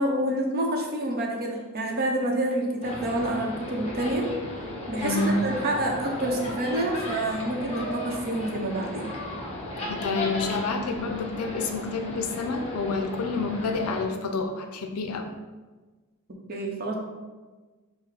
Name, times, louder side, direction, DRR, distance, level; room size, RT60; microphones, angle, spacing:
voice 1, 0.0-4.3 4.9-9.1 16.5-16.9, right 1 dB, 45° right, 0 dB, 0.8 m, -28 dB
sound 1, 2.8-14.0, left 1 dB, 30° left, 1.0 m, -35 dB
voice 2, 5.0-5.4 9.9-15.3, left 3 dB, 85° left, 5 dB, 0.5 m, -29 dB
4.8 x 2.1 x 4.7 m, 1.3 s
head